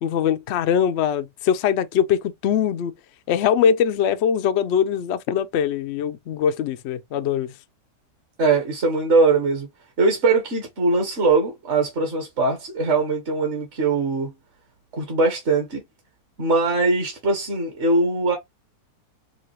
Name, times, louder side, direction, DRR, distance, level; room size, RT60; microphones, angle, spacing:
voice 1, 0.0-2.9 3.3-7.5, left 8 dB, 80° left, 0.6 m, -22 dB
voice 2, 8.4-9.7 10.0-14.3 14.9-15.8 16.4-18.4, right 3 dB, 45° right, 1.3 m, -21 dB
5.2 x 2.4 x 3.0 m
omnidirectional pair, 1.8 m